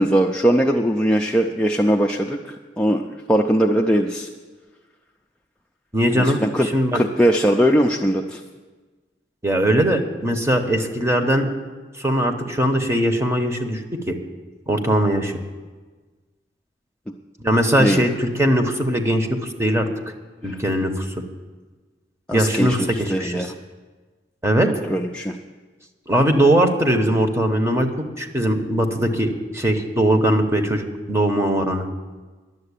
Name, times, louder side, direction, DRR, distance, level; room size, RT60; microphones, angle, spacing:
voice 1, 0.0-4.3 6.1-8.4 17.8-18.0 20.4-20.6 22.3-23.5 24.6-25.4, equal, 5° left, 0 dB, 0.5 m, -20 dB
voice 2, 5.9-6.4 6.7-7.0 9.4-11.5 12.0-14.2 14.7-15.3 17.4-19.9 20.4-21.2 22.3-23.5 24.4-24.7 26.1-27.9 28.2-31.9, right 1 dB, 15° right, 5 dB, 1.0 m, -20 dB
11.0 x 7.7 x 9.9 m, 1.3 s
head